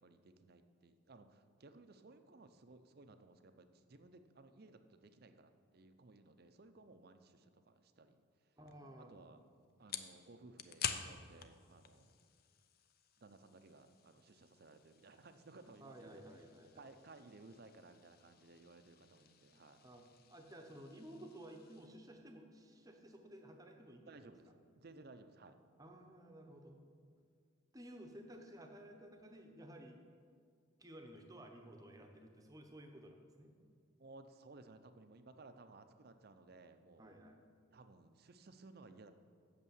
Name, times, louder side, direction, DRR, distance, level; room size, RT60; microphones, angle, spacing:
voice 1, 0.0-8.5 9.0-9.4 9.8-12.1 13.2-16.2 16.8-19.8 24.0-24.5 24.8-25.6 34.0-37.2 37.7-39.1, right 3 dB, 45° right, 9 dB, 0.6 m, -59 dB
voice 2, 8.6-9.1 15.8-16.9 19.4-24.3 25.8-26.8 27.7-30.0 30.8-33.5 37.0-37.4, right 1 dB, 15° right, 3 dB, 0.8 m, -55 dB
sound 1, 8.7-21.9, left 8 dB, 45° left, 0.5 m, -50 dB
8.3 x 6.7 x 7.2 m, 2.1 s
head